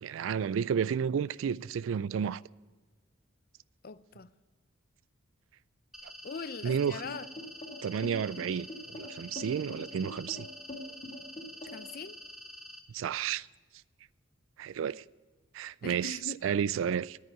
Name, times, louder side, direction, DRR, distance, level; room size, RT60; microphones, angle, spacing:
voice 1, 0.0-2.4 6.6-7.0 7.8-8.7 8.9-10.5 12.9-13.5 14.6-15.0 15.5-16.2 16.4-17.2, right 7 dB, 75° right, 0.3 m, -31 dB
voice 2, 3.8-4.3 6.2-7.3 11.7-12.2 15.8-16.4, left 5 dB, 50° left, 0.6 m, -41 dB
sound 1, 5.9-12.8, left 1 dB, ahead, 1.0 m, -48 dB
sound 2, 6.7-12.0, left 1 dB, 30° left, 2.2 m, -43 dB
10.5 x 9.5 x 9.4 m
head